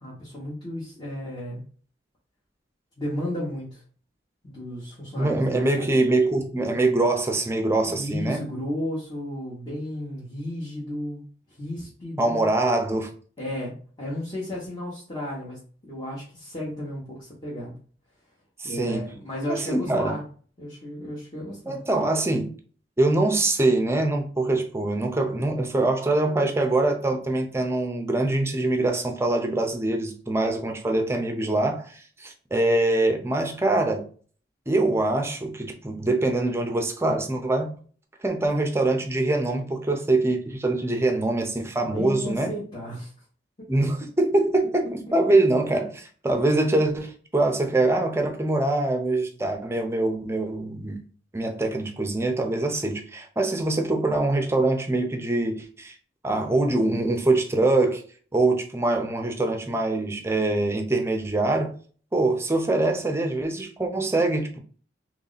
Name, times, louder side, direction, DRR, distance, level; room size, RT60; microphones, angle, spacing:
voice 1, 0.0-1.6 3.0-3.8 4.4-5.9 7.9-11.2 11.6-12.5 13.4-15.6 15.9-17.8 18.6-20.2 20.6-21.8 41.8-43.1, equal, 30° left, 1.2 m, -33 dB
voice 2, 5.2-8.4 12.2-13.1 18.6-19.0 19.5-20.2 21.7-22.5 23.0-34.1 34.7-37.7 38.2-42.5 43.7-50.9 51.3-55.9 56.2-58.0 58.3-61.7 62.1-64.6, right 2 dB, 15° right, 0.6 m, -24 dB
3.0 x 2.7 x 4.0 m
head